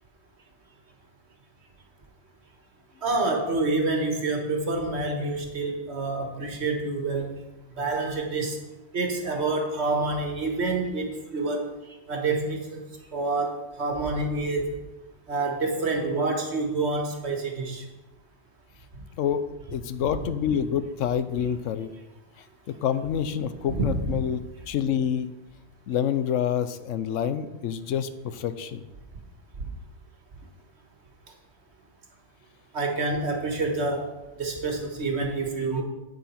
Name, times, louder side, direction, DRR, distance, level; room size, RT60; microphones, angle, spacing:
voice 1, 3.0-7.4 7.8-8.6 8.9-11.7 12.1-12.8 13.1-14.8 15.3-17.8 20.0-20.1 23.7-24.2 32.7-34.1 34.4-35.8, right 3 dB, 60° right, 3 dB, 1.6 m, -27 dB
voice 2, 19.2-21.9 22.8-25.3 25.9-28.8, left 8 dB, 85° left, 12 dB, 1.0 m, -27 dB
9.3 x 8.3 x 4.3 m, 1.1 s
omnidirectional pair, 1.3 m